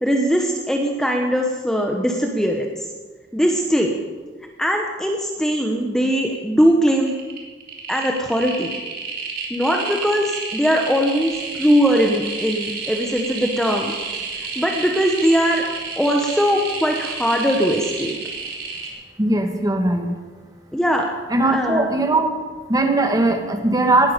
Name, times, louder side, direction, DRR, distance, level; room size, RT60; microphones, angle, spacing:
voice 1, 0.0-2.9 3.3-3.9 4.6-7.1 7.9-8.7 9.5-13.9 14.6-15.7 16.0-18.1 20.7-21.1 21.4-21.9, equal, 5° left, 1 dB, 1.1 m, -20 dB
sound 1, 5.5-5.7 6.0-6.6 7.0-18.9, right 4 dB, 55° right, 3.5 m, -30 dB
voice 2, 19.2-20.1 21.3-22.3 22.7-24.1, right 2 dB, 20° right, 4 dB, 1.6 m, -19 dB
19.0 x 12.0 x 5.2 m, 1.4 s
head